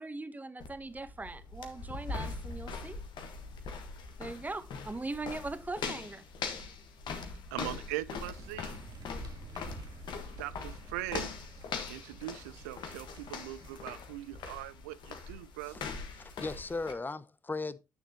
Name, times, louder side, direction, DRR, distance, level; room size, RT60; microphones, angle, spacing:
voice 1, 0.0-3.0 4.2-6.2, right 2 dB, 20° right, 1.0 m, -40 dB
sound 1, 0.6-16.9, left 4 dB, 65° left, 1.4 m, -42 dB
voice 2, 7.5-8.7 10.4-11.3 11.9-15.8, right 16 dB, 85° right, 0.4 m, -40 dB
sound 2, 8.4-13.9, right 5 dB, 55° right, 1.3 m, -53 dB
voice 3, 16.2-17.8, left 3 dB, 25° left, 0.8 m, -37 dB
9.7 x 6.6 x 2.9 m
hypercardioid pair, 45°, 8 cm